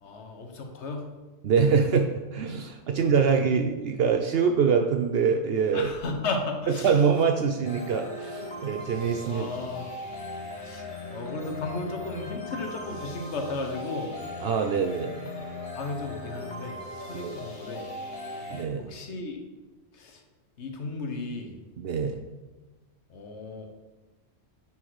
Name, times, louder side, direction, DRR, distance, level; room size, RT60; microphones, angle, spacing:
voice 1, 0.0-1.1 2.9-3.3 5.7-7.0 9.3-9.9 10.6-14.1 15.7-17.8 18.8-19.4 19.9-20.2 20.6-21.5 23.1-23.7, left 3 dB, 85° left, 3 dB, 1.3 m, -35 dB
voice 2, 1.4-5.9 6.7-9.5 14.4-15.4 17.1-17.3 18.5-18.9 21.8-22.2, right 6 dB, 65° right, 5 dB, 0.8 m, -24 dB
sound 1, 7.6-18.6, left 2 dB, 45° left, 1.4 m, -38 dB
9.8 x 4.4 x 4.7 m, 1.2 s
omnidirectional pair, 1.1 m